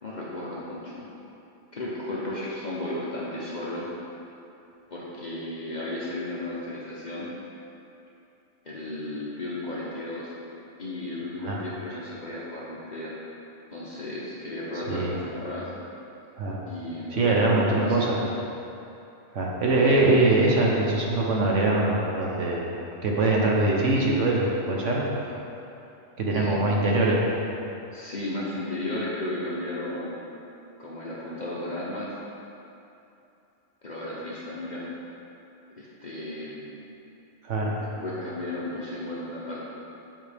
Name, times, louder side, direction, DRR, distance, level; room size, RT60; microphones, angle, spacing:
voice 1, 0.0-1.0 1.7-3.9 4.9-7.3 8.6-10.3 10.8-13.1 13.7-15.7 16.7-18.3 26.3-26.6 27.9-30.2 30.8-32.1 33.8-34.9 35.8-36.8 37.8-39.6, left 1 dB, 40° left, -6 dB, 0.8 m, -34 dB
voice 2, 17.1-18.2 19.3-22.7 23.0-25.0 26.2-27.2 37.4-37.7, right 2 dB, 60° right, -3 dB, 1.2 m, -23 dB
7.6 x 5.5 x 3.4 m, 2.8 s
omnidirectional pair, 1.5 m